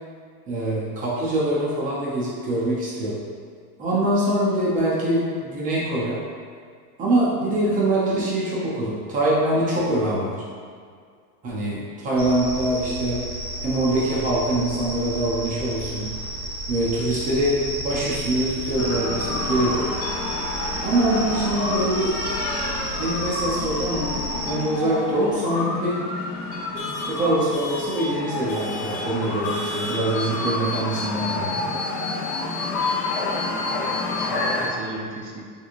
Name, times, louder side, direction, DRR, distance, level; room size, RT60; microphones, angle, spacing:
voice 1, 0.5-3.2 3.8-6.2 7.0-10.4 11.4-13.2 13.6-16.1 16.7-19.9 20.8-22.2 22.9-26.0 27.0-31.6 34.1-34.2, right 1 dB, 20° right, -7 dB, 0.4 m, -24 dB
sound 1, 12.2-24.5, right 1 dB, 20° left, 0.7 m, -32 dB
sound 2, 18.8-34.7, left 2 dB, 80° left, 0.8 m, -28 dB
voice 2, 33.5-35.4, right 2 dB, 55° right, -1 dB, 0.7 m, -37 dB
3.3 x 3.0 x 2.4 m, 2.1 s
supercardioid pair, 140°, 49 cm